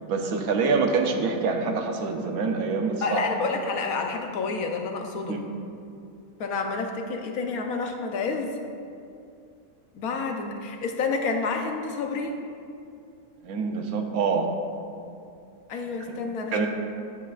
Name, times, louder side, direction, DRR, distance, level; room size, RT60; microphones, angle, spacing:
voice 1, 0.1-3.2 5.3-5.5 13.4-14.5 16.1-16.2 16.5-16.7, right 4 dB, 90° right, 3 dB, 1.3 m, -26 dB
voice 2, 3.0-5.4 6.4-8.5 9.9-12.4 15.7-16.6, left 4 dB, 85° left, 3 dB, 1.3 m, -29 dB
12.5 x 8.2 x 2.5 m, 2.5 s
omnidirectional pair, 1.5 m